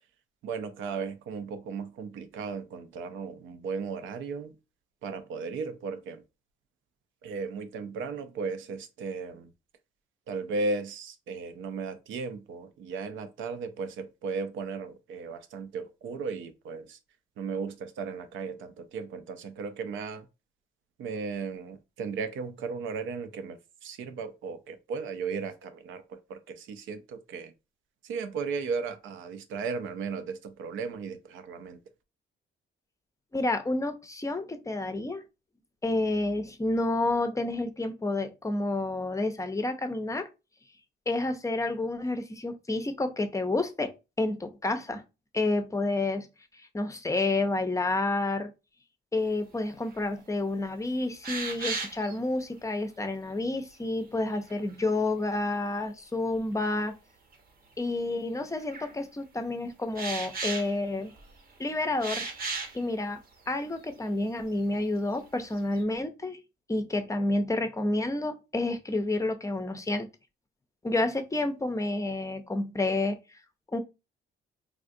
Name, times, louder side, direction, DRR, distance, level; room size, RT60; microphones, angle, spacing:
voice 1, 0.4-4.5 5.0-6.2 7.2-9.5 10.3-17.0 17.4-20.3 21.0-27.5 28.0-31.8, right 4 dB, 80° right, 0.5 m, -36 dB
voice 2, 33.3-35.2 35.8-40.3 41.1-43.9 44.2-45.0 45.3-46.3 46.7-48.5 49.1-56.9 57.8-61.1 61.6-62.3 62.7-63.2 63.5-66.4 66.7-70.1 70.8-73.2 73.7-73.8, left 2 dB, 15° left, 0.5 m, -29 dB
sound 1, 49.9-50.0 50.5-50.6 51.2-52.2 54.3-55.1 56.3-56.4 57.3-57.4 58.6-58.9 60.0-61.4 62.0-62.8 63.5-63.6 63.9-64.0 64.4-64.9 65.2-65.8, right 4 dB, 50° right, 0.8 m, -35 dB
3.5 x 2.4 x 2.6 m
cardioid pair, 90°, 20 cm